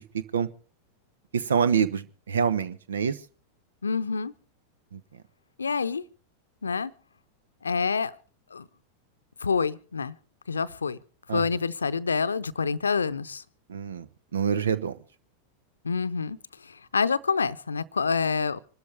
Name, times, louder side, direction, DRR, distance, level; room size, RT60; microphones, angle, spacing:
voice 1, 1.3-3.1 4.9-5.0 11.3-11.4 13.7-14.0 14.3-14.9, right 7 dB, 65° right, 1.1 m, -26 dB
voice 2, 3.8-4.3 5.6-6.0 6.6-6.9 7.6-8.2 8.5-8.6 9.4-10.2 10.5-11.0 11.3-13.4 15.8-16.4 16.6-18.6, left 5 dB, 75° left, 0.8 m, -27 dB
26.0 x 13.0 x 3.5 m
figure-of-eight pair, 90°, 0 cm